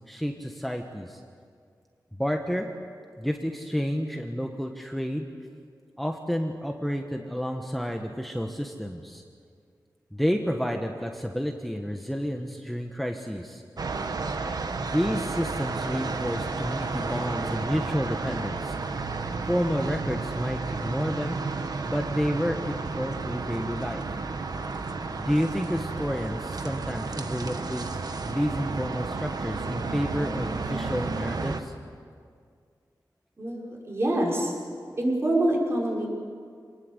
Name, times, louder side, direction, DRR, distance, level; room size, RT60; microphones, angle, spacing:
voice 1, 0.1-1.2 2.2-2.7 3.2-5.3 6.0-9.2 10.1-13.6 14.9-18.8 19.5-21.4 21.8-24.0 25.2-31.7, equal, ahead, 3 dB, 1.3 m, -30 dB
sound 1, 13.8-31.6, right 3 dB, 60° right, 1.3 m, -32 dB
voice 2, 33.4-34.5 35.0-36.1, right 1 dB, 35° right, -3 dB, 5.7 m, -25 dB
26.5 x 19.5 x 8.0 m, 2.2 s
wide cardioid pair, 130°, 8 cm